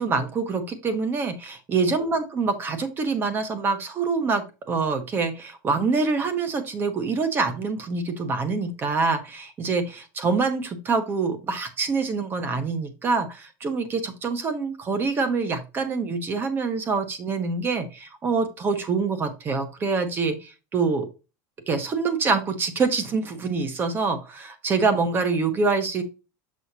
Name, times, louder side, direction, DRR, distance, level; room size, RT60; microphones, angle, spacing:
voice 1, 0.0-21.1 21.7-26.0, right 4 dB, 20° right, 10 dB, 1.1 m, -25 dB
6.4 x 5.4 x 2.8 m, 0.29 s
supercardioid pair, 160°, 9 cm